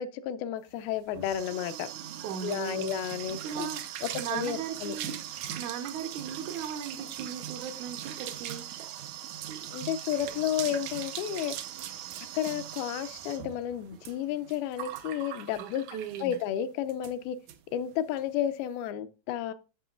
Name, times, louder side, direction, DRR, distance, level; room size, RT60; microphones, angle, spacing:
voice 1, 0.0-1.9 2.4-3.7 4.0-5.0 9.7-11.5 12.3-15.8 16.2-17.4 17.7-19.5, left 10 dB, 85° left, 2.4 m, -32 dB
sound 1, 0.8-16.5 16.9-17.1 17.5-17.6 17.9-18.2, right 11 dB, 90° right, 1.6 m, -40 dB
voice 2, 2.2-2.9 3.4-3.8 4.2-5.1 5.6-8.6 15.6-16.4, right 8 dB, 75° right, 1.8 m, -37 dB
13.0 x 5.7 x 2.4 m
omnidirectional pair, 4.2 m